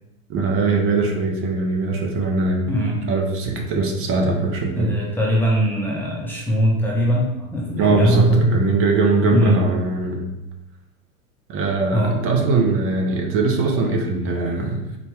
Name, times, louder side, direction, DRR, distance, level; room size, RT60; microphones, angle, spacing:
voice 1, 0.3-2.7 3.1-4.9 7.8-10.3 11.5-15.0, right 3 dB, 30° right, 2 dB, 0.7 m, -21 dB
voice 2, 2.7-3.0 4.8-8.5 9.3-9.6 11.9-12.2 14.4-14.5, equal, 5° left, -5 dB, 0.6 m, -20 dB
4.1 x 2.9 x 3.4 m, 0.95 s
figure-of-eight pair, 95°, 43 cm